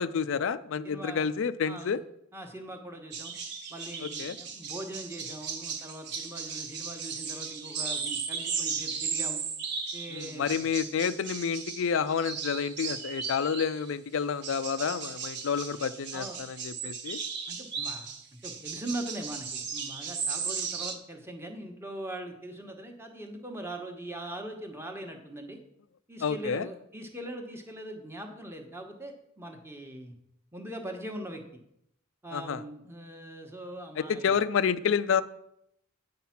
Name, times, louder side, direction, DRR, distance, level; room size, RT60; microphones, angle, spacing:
voice 1, 0.0-2.0 4.0-4.4 10.1-17.2 26.2-26.7 32.3-32.6 34.0-35.2, left 6 dB, 60° left, 14 dB, 0.4 m, -29 dB
voice 2, 0.8-1.2 1.7-2.0 2.3-3.3 3.7-9.4 9.9-10.7 16.1-16.4 17.5-18.1 18.4-25.6 26.1-30.1 30.5-31.4 32.2-34.3, right 1 dB, 10° right, 4 dB, 1.1 m, -41 dB
sound 1, 3.1-13.9 14.4-21.0, right 6 dB, 50° right, 1.0 m, -36 dB
9.3 x 5.7 x 5.8 m, 0.75 s
head